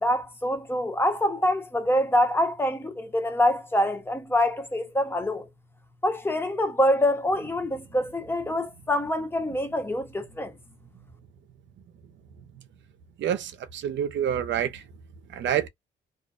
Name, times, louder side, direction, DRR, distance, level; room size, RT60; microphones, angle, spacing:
voice 1, 0.0-5.4 6.0-10.5, left 1 dB, 10° left, 0.8 m, -25 dB
voice 2, 13.2-14.7 15.3-15.7, right 9 dB, 65° right, 0.6 m, -27 dB
2.4 x 2.2 x 2.3 m
cardioid pair, 90°, 20 cm